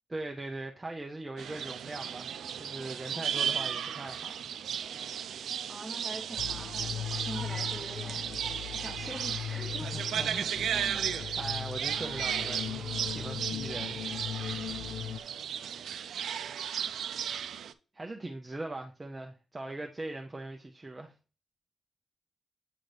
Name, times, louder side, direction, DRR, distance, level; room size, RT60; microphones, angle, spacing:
voice 1, 0.1-4.4 9.9-14.0 17.9-21.1, right 2 dB, 15° right, 0.6 m, -41 dB
sound 1, 1.4-17.7, right 8 dB, 85° right, 0.4 m, -35 dB
voice 2, 5.7-8.4 8.7-9.9, right 1 dB, ahead, 1.1 m, -44 dB
sound 2, 6.4-15.2, left 10 dB, 75° left, 0.3 m, -39 dB
8.9 x 4.0 x 3.3 m
wide cardioid pair, 150°, 0 cm